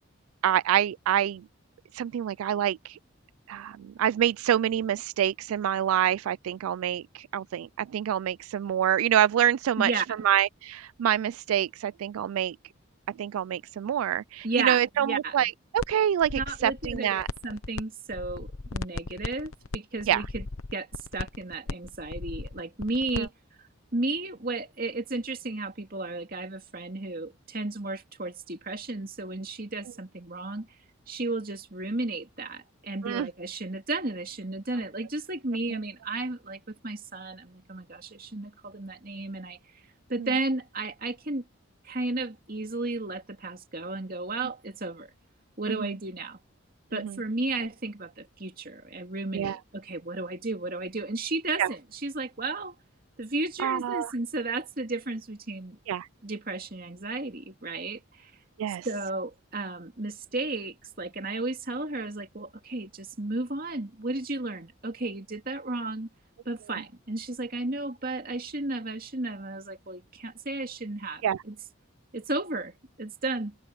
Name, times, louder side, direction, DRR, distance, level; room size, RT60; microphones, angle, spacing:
voice 1, 0.4-1.4 1.9-3.0 3.5-12.6 13.2-17.3 20.1-20.2 23.2-23.3 33.0-33.3 35.7-35.8 40.2-40.3 45.8-45.9 46.9-47.1 49.3-49.6 51.6-51.7 53.6-54.1 55.9-56.1 58.6-58.9 71.2-71.4, right 10 dB, 85° right, 0.3 m, -26 dB
voice 2, 14.4-15.4 16.3-20.4 20.7-23.3 23.9-30.7 31.1-39.6 40.1-41.4 41.8-45.1 45.6-46.4 46.9-52.8 53.2-55.8 56.2-58.3 58.8-66.1 66.4-71.5 72.1-73.6, right 2 dB, 45° right, 2.6 m, -33 dB
sound 1, 15.8-15.9 16.2-17.8 18.1-23.3, left 3 dB, 85° left, 1.0 m, -36 dB
head